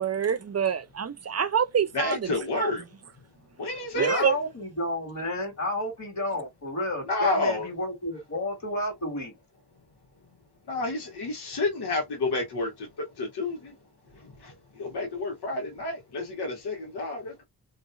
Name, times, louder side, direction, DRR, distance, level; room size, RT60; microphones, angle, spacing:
voice 1, 0.0-2.3 2.5-2.7 4.0-4.3, right 8 dB, 40° right, 0.6 m, -26 dB
voice 2, 1.9-2.8 3.6-4.4 7.1-7.7 10.7-13.8 14.1-17.4, left 2 dB, 75° left, 1.7 m, -30 dB
voice 3, 3.9-9.4, left 1 dB, 45° left, 2.1 m, -31 dB
3.1 x 2.7 x 2.4 m
supercardioid pair, 40°, 39 cm